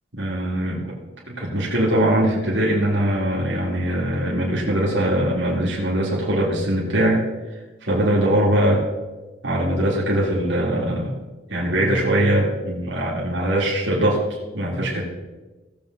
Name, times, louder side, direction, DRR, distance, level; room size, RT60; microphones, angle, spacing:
voice 1, 0.1-0.8 1.3-7.2 7.8-8.8 9.4-11.1 11.5-15.0, right 1 dB, 90° right, -4 dB, 2.8 m, -21 dB
17.0 x 7.5 x 4.0 m, 1.2 s
head